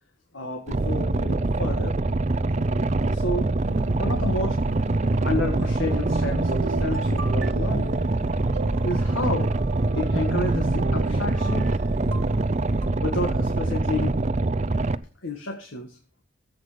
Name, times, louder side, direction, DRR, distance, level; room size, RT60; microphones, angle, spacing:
voice 1, 0.3-2.0 3.1-3.5 4.0-4.6 5.2-8.0 8.8-9.5 9.9-11.7 13.0-14.2 15.2-16.0, left 2 dB, 80° left, 2 dB, 1.9 m, -30 dB
Boat Water vehicle, 0.7-14.9, right 2 dB, 35° right, 0.6 m, -24 dB
sound 1, 3.6-12.9, right 2 dB, 60° right, 1.0 m, -32 dB
15.0 x 8.3 x 5.2 m, 0.37 s
head